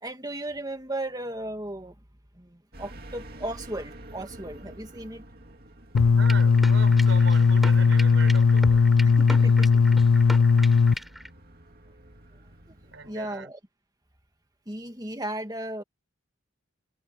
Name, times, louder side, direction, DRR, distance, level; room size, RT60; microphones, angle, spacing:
voice 1, 0.0-2.0 2.3-5.2 9.2-10.2 12.7-12.8 13.0-13.6 14.7-15.8, right 1 dB, 20° right, 2.1 m, -36 dB
sound 1, 2.7-13.1, right 1 dB, 45° right, 2.7 m, -49 dB
sound 2, 5.9-10.9, left 5 dB, 85° left, 0.5 m, -18 dB
sound 3, 6.0-11.3, equal, ahead, 7.1 m, -37 dB
voice 2, 6.1-9.0 12.8-13.5, right 3 dB, 60° right, 5.9 m, -39 dB
head